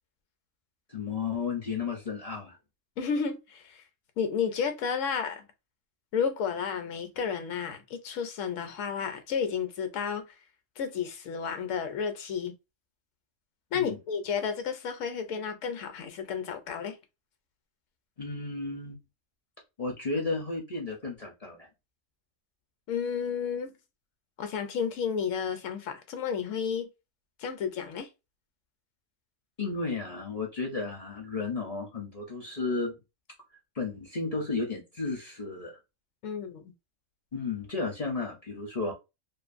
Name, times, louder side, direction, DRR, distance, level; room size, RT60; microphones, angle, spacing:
voice 1, 0.9-2.6 13.7-14.0 18.2-19.0 19.8-21.7 29.6-32.9 33.7-35.8 37.3-38.9, left 4 dB, 45° left, 0.5 m, -33 dB
voice 2, 3.0-3.8 4.2-5.4 6.1-10.2 10.8-12.5 13.7-17.0 22.9-23.7 24.4-26.9 27.4-28.1 36.2-36.7, left 6 dB, 75° left, 0.9 m, -32 dB
2.5 x 2.4 x 2.4 m
omnidirectional pair, 1.4 m